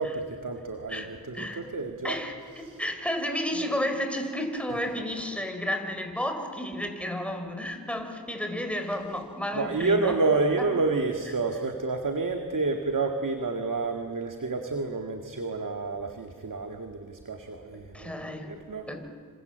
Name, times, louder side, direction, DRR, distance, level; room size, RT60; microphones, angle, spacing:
voice 1, 0.0-2.2 2.6-2.8 9.5-18.9, right 3 dB, 60° right, 5 dB, 2.0 m, -29 dB
voice 2, 2.0-10.2 17.9-18.5 18.9-19.1, left 1 dB, 5° left, 4 dB, 4.2 m, -32 dB
27.5 x 26.5 x 8.0 m, 2.4 s
cardioid pair, 50°, 36 cm